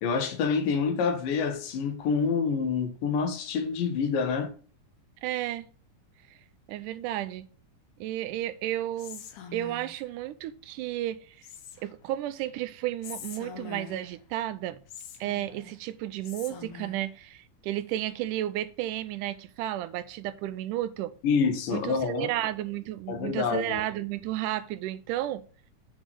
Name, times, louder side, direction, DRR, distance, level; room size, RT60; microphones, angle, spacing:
voice 1, 0.0-4.5 21.2-22.3 23.1-23.8, left 5 dB, 90° left, 2.8 m, -27 dB
voice 2, 5.2-5.7 6.7-7.5 8.0-9.3 9.5-11.4 11.8-14.8 15.2-21.1 21.7-25.4, right 13 dB, 80° right, 2.1 m, -32 dB
Whispering, 9.0-10.1 11.4-12.1 13.0-14.2 14.9-15.8 16.2-17.1, left 7 dB, 70° left, 2.4 m, -44 dB
8.1 x 3.8 x 6.1 m
omnidirectional pair, 3.8 m